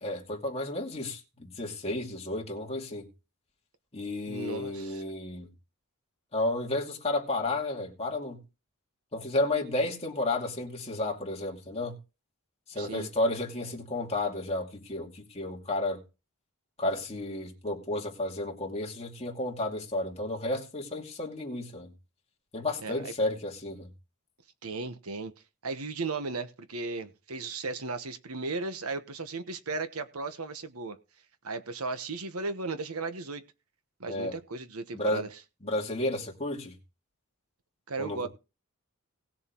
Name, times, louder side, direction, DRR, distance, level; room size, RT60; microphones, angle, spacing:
voice 1, 0.0-3.1 3.9-5.5 6.3-8.4 9.1-12.0 12.7-16.0 16.8-21.9 22.5-23.9 34.1-34.4 34.9-35.3 35.6-36.8 38.0-38.3, left 2 dB, 30° left, 2.5 m, -32 dB
voice 2, 4.3-5.0 12.7-13.1 22.8-23.0 24.6-25.3 25.6-31.0 31.4-33.4 34.0-35.3 37.9-38.3, right 3 dB, 80° right, 1.2 m, -35 dB
19.0 x 7.1 x 3.1 m
head